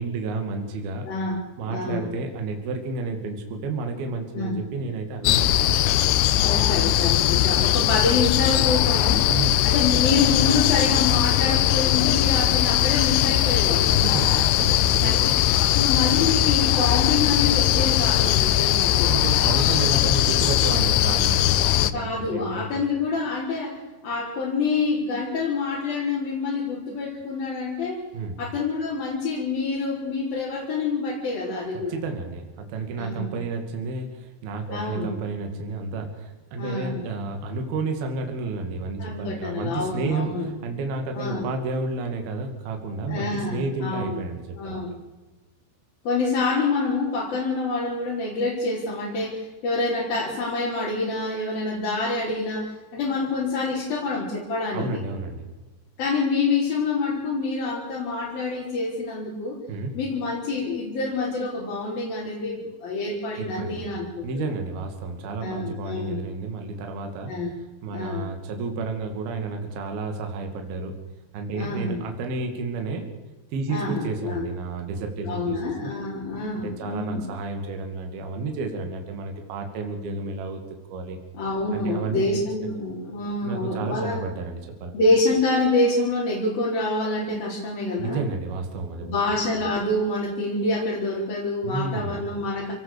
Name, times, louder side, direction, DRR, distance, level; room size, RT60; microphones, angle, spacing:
voice 1, 0.0-1.0 1.6-6.4 9.3-9.6 14.0-15.2 19.1-22.8 28.1-28.4 31.9-44.8 54.7-55.5 59.7-59.9 63.4-63.9 64.2-67.3 67.8-71.0 71.3-73.1 73.5-75.9 76.6-80.6 80.9-81.2 81.7-82.4 83.4-84.9 88.0-89.2 91.6-92.2, right 3 dB, 55° right, 4 dB, 4.1 m, -31 dB
voice 2, 1.1-2.1 4.3-4.6 6.4-9.3 9.6-14.1 15.0-19.2 21.9-28.0 28.4-32.0 33.0-33.4 34.7-35.1 36.6-37.0 39.0-40.5 41.2-41.5 43.1-44.2 44.6-45.0 46.0-54.9 56.0-59.6 59.9-64.5 65.4-66.2 67.3-67.6 67.9-68.3 71.5-72.0 73.7-74.5 75.2-77.2 81.3-84.2 84.9-88.2 89.0-92.7, left 3 dB, 50° left, -5 dB, 5.9 m, -27 dB
sound 1, 5.2-21.9, left 13 dB, 75° left, 2.6 m, -20 dB
29.5 x 18.5 x 6.9 m, 1.2 s
omnidirectional pair, 5.6 m